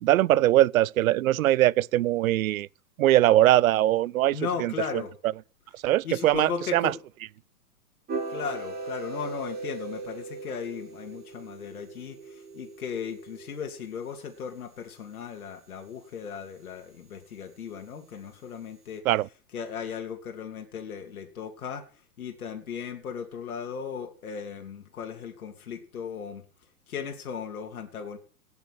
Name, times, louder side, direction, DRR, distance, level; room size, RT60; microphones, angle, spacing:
voice 1, 0.0-2.7 3.0-4.7 5.8-6.9 19.1-19.3, right 14 dB, 70° right, 0.5 m, -21 dB
voice 2, 4.3-5.1 6.0-7.0 8.3-19.0 19.5-21.9 22.2-26.4 26.9-28.2, left 6 dB, 75° left, 3.0 m, -36 dB
sound 1, 8.1-14.2, right 3 dB, 20° right, 7.0 m, -38 dB
18.0 x 7.0 x 6.3 m
hypercardioid pair, 115°, 43 cm